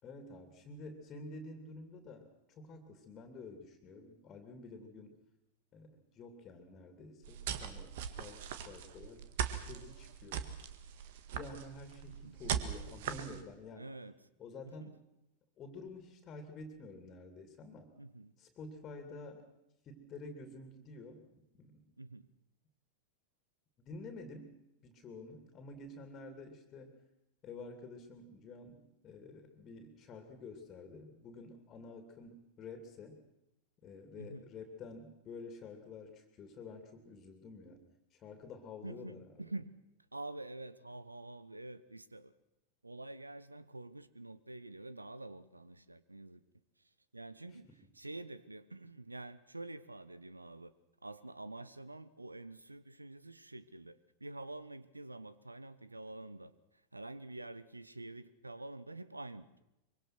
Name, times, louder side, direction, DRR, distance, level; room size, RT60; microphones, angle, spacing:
voice 1, 0.0-5.1 5.7-9.3 9.5-10.5 11.3-13.9 14.4-15.0 15.6-18.0 18.4-19.5 19.8-21.9 23.8-24.6 24.8-27.0 27.4-33.2 33.8-37.8 38.1-39.3 47.5-47.8, left 3 dB, 30° left, 2.9 m, -50 dB
sound 1, 7.2-13.4, right 9 dB, 55° right, 1.7 m, -40 dB
voice 2, 12.1-12.4 13.7-14.2 14.6-14.9 18.0-18.3 22.0-22.3 34.1-34.5 38.8-39.7 40.1-42.3 42.8-46.4 47.1-47.7 47.9-50.7 51.0-56.5 56.9-59.5, right 2 dB, 85° right, 1.0 m, -47 dB
24.0 x 23.5 x 6.1 m
figure-of-eight pair, 90°, 0 cm